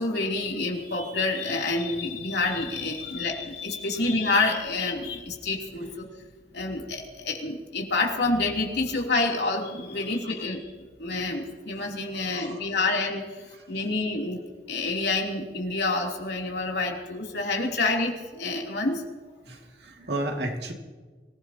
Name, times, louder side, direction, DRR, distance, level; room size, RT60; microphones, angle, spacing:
voice 1, 0.0-6.1 6.5-10.6 11.0-13.2 13.7-14.4 14.7-19.0, left 3 dB, 80° left, 0 dB, 3.1 m, -28 dB
voice 2, 12.2-12.7 19.4-20.7, right 1 dB, 75° right, 2 dB, 2.3 m, -33 dB
24.5 x 16.0 x 2.9 m, 1.4 s
head